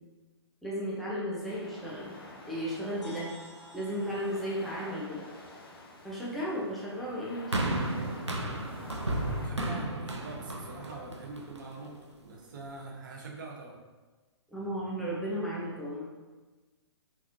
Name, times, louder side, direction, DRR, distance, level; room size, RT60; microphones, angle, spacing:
voice 1, 0.6-2.1 2.5-3.3 3.7-5.3 6.0-7.8 14.5-16.0, equal, ahead, -7 dB, 0.7 m, -34 dB
sound 1, 1.4-9.5, left 2 dB, 55° left, 0.7 m, -49 dB
sound 2, 3.0-6.8, left 1 dB, 85° left, 0.8 m, -53 dB
sound 3, 7.5-11.9 12.7-12.8, right 1 dB, 90° right, 0.5 m, -33 dB
voice 2, 9.4-13.8, right 3 dB, 45° right, -1 dB, 0.8 m, -44 dB
3.9 x 3.5 x 2.6 m, 1.3 s
figure-of-eight pair, 125°, 14 cm